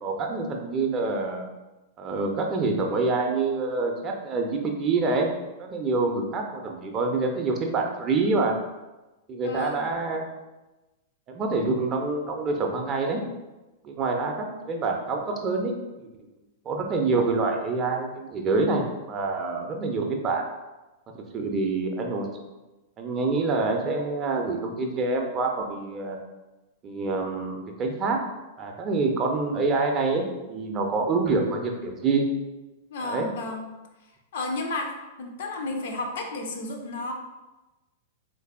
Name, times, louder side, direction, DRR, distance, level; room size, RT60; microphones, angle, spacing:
voice 1, 0.0-1.5 2.0-5.3 5.6-8.5 9.3-10.2 11.3-13.2 13.8-15.7 16.0-16.1 16.7-20.4 21.3-22.3 23.0-26.2 26.8-28.2 28.6-32.2 33.0-33.3, right 3 dB, 30° right, 2 dB, 0.4 m, -26 dB
voice 2, 9.4-9.9 32.9-33.6 34.3-34.9 35.2-37.1, left 2 dB, 55° left, 3 dB, 0.4 m, -32 dB
3.3 x 2.5 x 2.3 m, 1.1 s
figure-of-eight pair, 100°, 0 cm